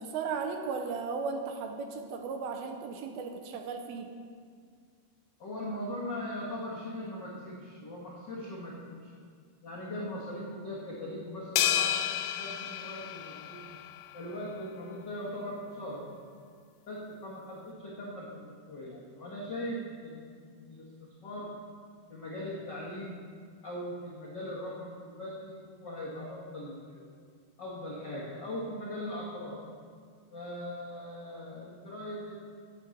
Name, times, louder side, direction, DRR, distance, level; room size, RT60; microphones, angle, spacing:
voice 1, 0.0-4.1, right 5 dB, 80° right, 4 dB, 2.5 m, -36 dB
voice 2, 5.4-9.1 9.6-12.0 12.4-13.7 14.1-16.1 16.9-20.3 20.5-21.5 22.1-23.2 23.6-27.1 27.6-29.6 30.3-32.4, left 1 dB, 70° left, -6 dB, 1.0 m, -40 dB
sound 1, 11.6-14.1, left 11 dB, 85° left, 2.6 m, -31 dB
10.0 x 8.4 x 7.1 m, 2.1 s
omnidirectional pair, 4.7 m